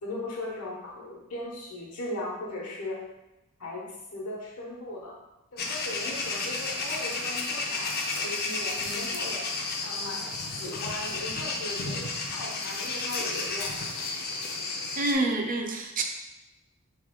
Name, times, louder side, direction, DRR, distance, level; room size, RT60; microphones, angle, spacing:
voice 1, 0.0-3.0 3.6-5.1 5.5-9.5 9.8-13.8, left 1 dB, 80° left, -3 dB, 1.0 m, -38 dB
sound 1, 5.6-15.1, left 3 dB, 45° left, 0.5 m, -32 dB
voice 2, 15.0-16.0, right 2 dB, 40° right, 3 dB, 0.4 m, -27 dB
3.4 x 3.2 x 3.7 m, 0.97 s
head